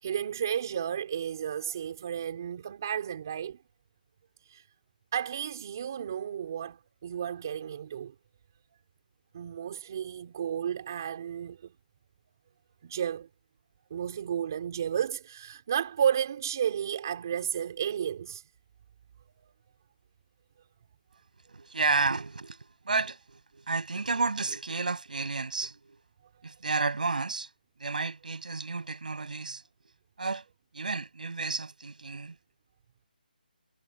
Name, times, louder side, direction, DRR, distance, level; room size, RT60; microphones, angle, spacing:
voice 1, 0.0-3.6 4.5-4.6 5.1-8.1 9.3-11.7 12.8-13.3 13.9-18.4, right 9 dB, 20° right, 3.1 m, -32 dB
voice 2, 21.5-26.0 26.4-27.5 27.8-29.6 30.2-30.4 30.7-32.4, right 3 dB, 55° right, 7.8 m, -31 dB
hypercardioid pair, 175°, 5 cm